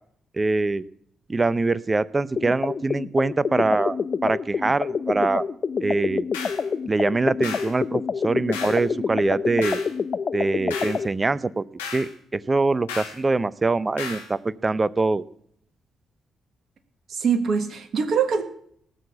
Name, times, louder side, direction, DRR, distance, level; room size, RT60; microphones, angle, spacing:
voice 1, 0.3-0.8 1.3-5.5 5.8-6.2 6.9-9.8 10.3-11.6 11.9-15.2, right 3 dB, 30° right, 18 dB, 0.8 m, -23 dB
sound 1, 2.4-11.1, left 5 dB, 50° left, 0.6 m, -27 dB
sound 2, 6.3-6.7 7.4-7.7 8.5-8.8 9.6-9.9 10.7-11.0 11.8-12.1 12.9-13.2 14.0-14.3, left 6 dB, 90° left, 1.8 m, -34 dB
voice 2, 17.1-18.4, right 6 dB, 60° right, 7 dB, 1.5 m, -23 dB
18.0 x 6.7 x 7.1 m, 0.66 s
hypercardioid pair, 40°, 0 cm